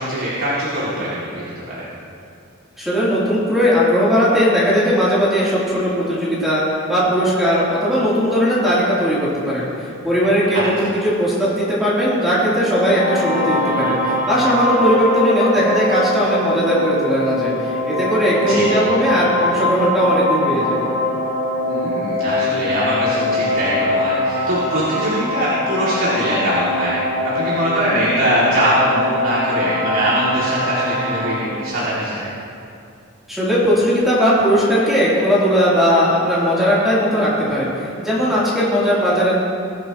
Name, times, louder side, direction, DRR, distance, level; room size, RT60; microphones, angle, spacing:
voice 1, 0.0-1.9 10.5-10.9 18.4-18.9 21.7-27.0 27.3-32.2, right 1 dB, 75° right, -10 dB, 2.8 m, -22 dB
voice 2, 2.8-20.8 33.3-39.4, equal, ahead, -10 dB, 3.4 m, -18 dB
sound 1, 12.6-31.4, left 1 dB, 30° right, 1.8 m, -22 dB
21.5 x 11.0 x 3.1 m, 2.5 s
head